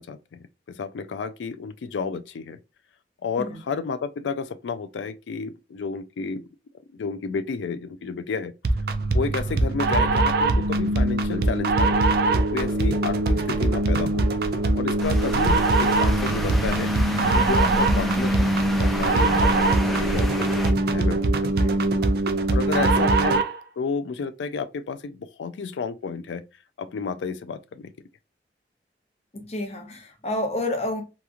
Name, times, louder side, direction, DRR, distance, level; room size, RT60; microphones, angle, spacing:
voice 1, 0.0-2.6 3.2-6.5 6.9-8.5 9.1-14.3 14.8-16.9 17.3-21.2 21.6-21.8 22.5-23.4 23.8-26.5 26.8-27.9, left 5 dB, 90° left, 0.4 m, -31 dB
sound 1, 8.6-23.6, right 2 dB, 60° right, 0.4 m, -22 dB
sound 2, 15.0-20.7, equal, ahead, 0.4 m, -30 dB
voice 2, 29.3-31.0, left 1 dB, 35° left, 0.7 m, -29 dB
2.9 x 2.4 x 2.5 m
head